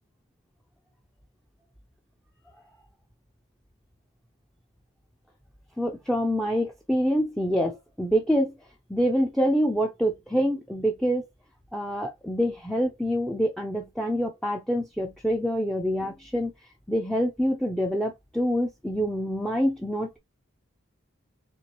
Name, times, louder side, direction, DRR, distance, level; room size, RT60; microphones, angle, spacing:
voice 1, 5.8-8.5 8.9-11.3 11.7-16.5 16.9-20.2, equal, ahead, 0.4 m, -26 dB
4.4 x 2.9 x 2.9 m
head